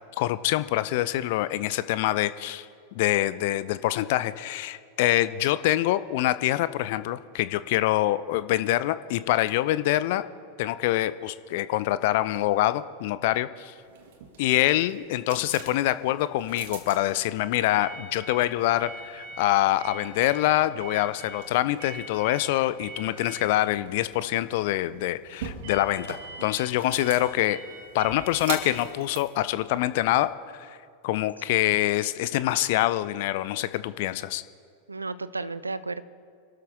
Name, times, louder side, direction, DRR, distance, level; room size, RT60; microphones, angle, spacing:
voice 1, 0.2-2.7 2.9-10.2 10.6-13.7 14.4-27.6 27.9-30.3 30.6-30.8 31.0-34.4, left 15 dB, 50° left, 14 dB, 0.6 m, -25 dB
sound 1, 13.9-30.3, right 4 dB, 55° right, 2.1 m, -42 dB
voice 2, 34.9-36.0, right 3 dB, 80° right, 15 dB, 0.6 m, -34 dB
27.0 x 12.5 x 3.6 m, 2.2 s
figure-of-eight pair, 90°, 0 cm